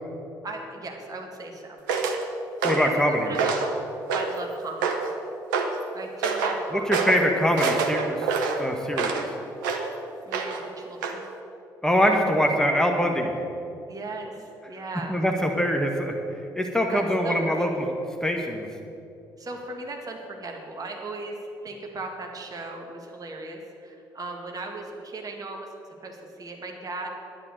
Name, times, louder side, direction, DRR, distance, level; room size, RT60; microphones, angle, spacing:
voice 1, 0.4-1.8 2.6-3.5 4.1-5.0 5.9-7.1 10.3-11.3 13.9-15.2 16.9-17.7 19.4-21.4 21.6-25.7 26.0-27.1, right 2 dB, 35° right, 2 dB, 2.1 m, -37 dB
sound 1, 1.9-2.2 2.6-2.9 3.3-3.7 4.1-4.4 4.8-5.1 5.5-5.8 6.2-6.6 6.9-7.2 7.6-9.3 9.6-9.9 10.3-10.7 11.0-11.2, right 5 dB, 75° right, 1.0 m, -26 dB
voice 2, 2.6-3.3 6.7-9.3 11.8-13.3 15.1-16.1 16.5-17.9 18.2-18.7, equal, 5° left, 2 dB, 1.6 m, -23 dB
11.0 x 10.5 x 6.6 m, 2.8 s
figure-of-eight pair, 45°, 10 cm